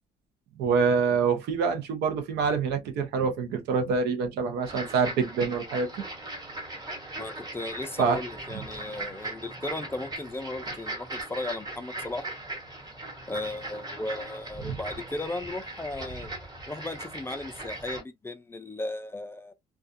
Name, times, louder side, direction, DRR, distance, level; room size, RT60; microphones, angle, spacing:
voice 1, 0.6-5.9 8.0-8.2 8.5-8.6, right 5 dB, 80° right, 0.8 m, -26 dB
sound 1, 4.6-18.0, right 2 dB, 25° right, 1.2 m, -39 dB
voice 2, 7.2-12.2 13.3-16.3 16.7-19.5, left 2 dB, 15° left, 0.4 m, -36 dB
2.3 x 2.3 x 2.5 m
cardioid pair, 110°, 17 cm